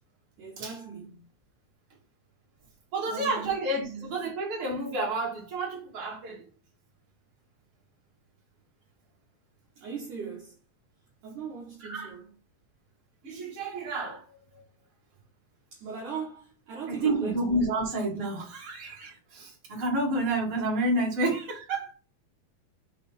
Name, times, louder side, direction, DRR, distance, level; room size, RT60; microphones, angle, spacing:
voice 1, 0.4-1.2 3.1-4.1 9.8-10.6 11.2-12.3 15.7-17.6, right 6 dB, 65° right, 2.0 m, -39 dB
voice 2, 2.9-6.5 11.8-12.1 13.2-14.2 16.9-21.9, right 2 dB, 35° right, 2.5 m, -30 dB
8.0 x 3.2 x 4.3 m
omnidirectional pair, 5.4 m